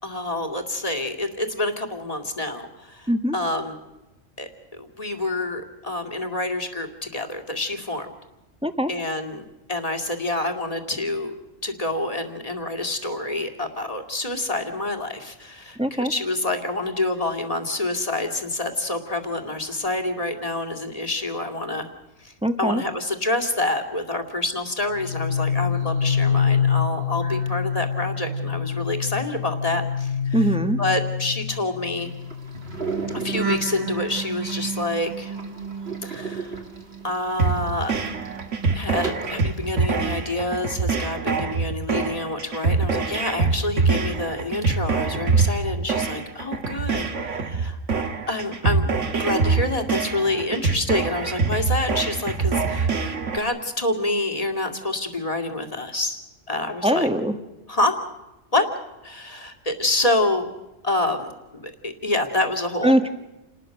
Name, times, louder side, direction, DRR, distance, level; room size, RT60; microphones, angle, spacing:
voice 1, 0.0-3.8 4.4-8.1 8.9-11.3 11.6-21.9 22.2-22.3 22.6-30.4 30.8-32.1 33.1-35.4 36.0-36.6 37.0-37.9 38.7-47.8 48.3-52.9 53.3-56.2 56.5-57.1 57.7-58.0 58.5-58.7 59.0-60.5 60.8-62.9, left 2 dB, 30° left, 5 dB, 2.4 m, -27 dB
voice 2, 15.8-16.1 22.4-22.8 30.3-30.8 56.8-57.3 62.8-63.1, right 1 dB, 5° right, 8 dB, 1.4 m, -21 dB
sound 1, 24.9-37.2 37.5-39.5 39.8-40.2, left 5 dB, 35° right, 1.5 m, -27 dB
sound 2, 32.0-40.4, right 4 dB, 50° right, 2.8 m, -38 dB
sound 3, 37.4-53.4, right 4 dB, 70° right, 1.8 m, -24 dB
29.0 x 20.0 x 6.5 m, 0.99 s
omnidirectional pair, 1.3 m